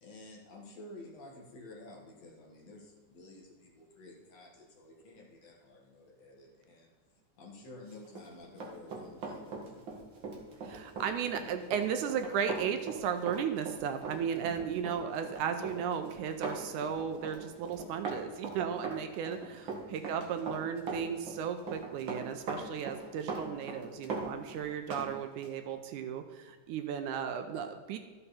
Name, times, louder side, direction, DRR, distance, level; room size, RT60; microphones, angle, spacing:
voice 1, 0.0-6.9 7.4-9.8 19.6-19.8, left 2 dB, 55° left, -1 dB, 2.5 m, -51 dB
Run, 8.0-25.1 25.4-25.6, right 4 dB, 45° right, 1.9 m, -40 dB
voice 2, 10.6-28.0, right 7 dB, 80° right, 7 dB, 2.1 m, -35 dB
13.5 x 6.7 x 4.2 m, 1.4 s
omnidirectional pair, 3.7 m